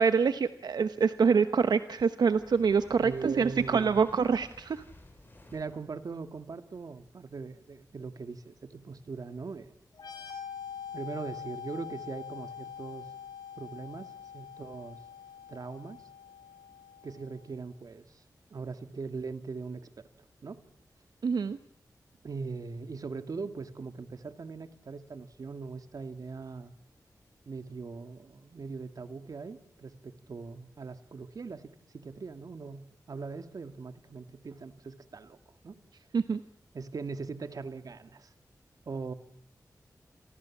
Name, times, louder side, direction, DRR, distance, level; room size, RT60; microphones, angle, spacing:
voice 1, 0.0-4.8 21.2-21.6 36.1-36.4, right 5 dB, 90° right, 11 dB, 1.0 m, -25 dB
Fire, 2.2-5.9, left 2 dB, 30° left, 7.2 m, -53 dB
voice 2, 3.0-4.0 5.5-9.7 10.9-13.1 13.6-15.0 15.5-16.0 17.0-18.2 18.5-20.1 20.4-20.6 22.2-26.7 27.5-35.4 35.6-35.8 36.7-38.3 38.9-39.1, right 4 dB, 60° right, 9 dB, 2.0 m, -40 dB
sound 1, 9.9-17.4, left 8 dB, 85° left, 8.0 m, -44 dB
29.0 x 23.5 x 7.3 m, 0.68 s
wide cardioid pair, 115°, 7 cm